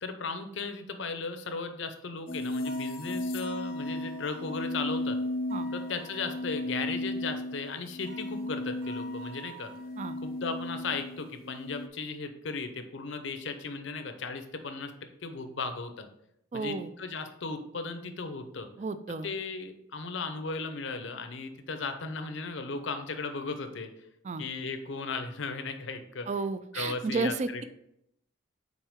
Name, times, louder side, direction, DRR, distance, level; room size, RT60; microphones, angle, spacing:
voice 1, 0.0-5.2 5.7-9.7 10.2-14.9 15.2-16.1 16.5-18.7 19.2-23.9 24.4-26.3 26.7-27.6, left 4 dB, 70° left, 8 dB, 0.7 m, -36 dB
sound 1, 2.3-11.9, left 1 dB, 45° left, 0.3 m, -35 dB
sound 2, 2.7-4.8 5.5-6.8 8.1-10.2, equal, 75° right, 0.9 m, -49 dB
voice 2, 16.5-16.9 18.8-19.3 24.2-24.4 26.3-27.6, right 3 dB, 35° right, 12 dB, 0.3 m, -32 dB
6.0 x 4.5 x 3.6 m, 0.78 s
head